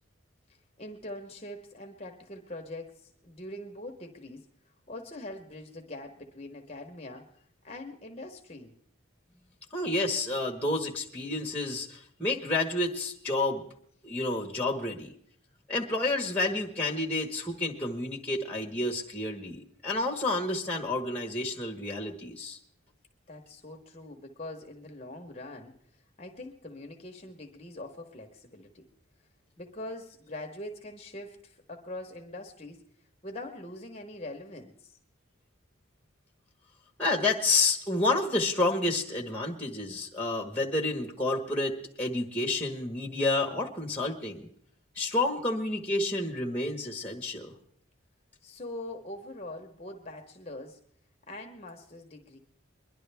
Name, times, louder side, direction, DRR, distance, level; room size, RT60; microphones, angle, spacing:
voice 1, 0.8-4.5 4.9-7.4 7.6-8.7 23.3-28.9 29.6-32.8 33.2-34.9 48.4-50.8 51.3-52.4, left 1 dB, 30° left, 3 dB, 1.0 m, -43 dB
voice 2, 9.7-13.6 14.0-15.1 15.7-22.6 37.0-44.5 44.9-47.5, left 2 dB, 5° left, 0 dB, 1.3 m, -30 dB
23.0 x 11.0 x 3.4 m, 0.65 s
head